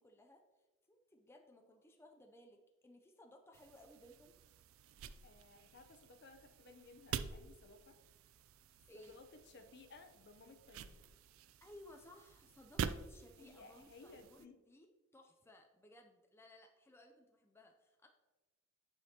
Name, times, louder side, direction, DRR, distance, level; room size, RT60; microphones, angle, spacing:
voice 1, 0.0-4.4 8.9-9.2 11.6-18.1, left 1 dB, 10° left, 3 dB, 0.4 m, -61 dB
sound 1, 3.5-14.5, right 7 dB, 70° right, 0.3 m, -48 dB
voice 2, 5.2-8.0 8.9-11.0 13.4-14.6, left 3 dB, 55° left, 6 dB, 0.6 m, -59 dB
9.0 x 5.1 x 2.8 m, 1.2 s
head